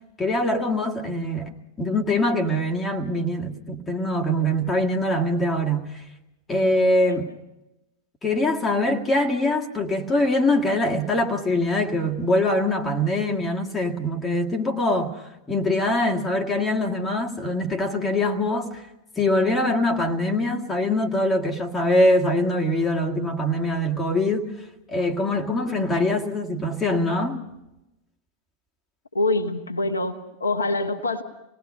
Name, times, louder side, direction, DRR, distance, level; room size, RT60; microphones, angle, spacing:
voice 1, 0.2-1.5 1.8-6.0 6.5-7.3 8.2-15.1 15.5-18.8 19.2-24.5 24.9-27.4, left 1 dB, 15° left, 1.9 m, -23 dB
voice 2, 29.1-31.2, left 2 dB, 75° left, 1.2 m, -25 dB
27.0 x 19.5 x 5.4 m
figure-of-eight pair, 90°, 0 cm